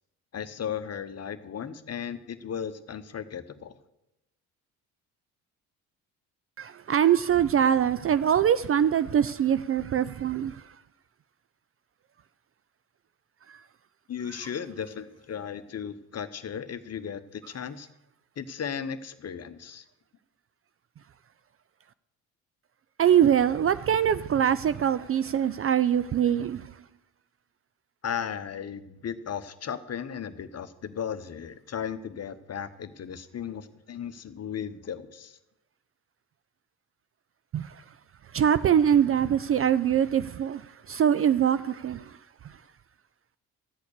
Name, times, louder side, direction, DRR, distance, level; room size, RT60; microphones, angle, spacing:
voice 1, 0.3-3.7 14.1-17.9 18.4-19.8 28.0-35.4, left 8 dB, 35° left, 1.1 m, -36 dB
voice 2, 6.6-10.6 23.0-26.6 37.5-37.7 38.3-42.1, right 9 dB, 30° right, 0.5 m, -23 dB
13.5 x 8.3 x 6.6 m
hypercardioid pair, 55°, 44 cm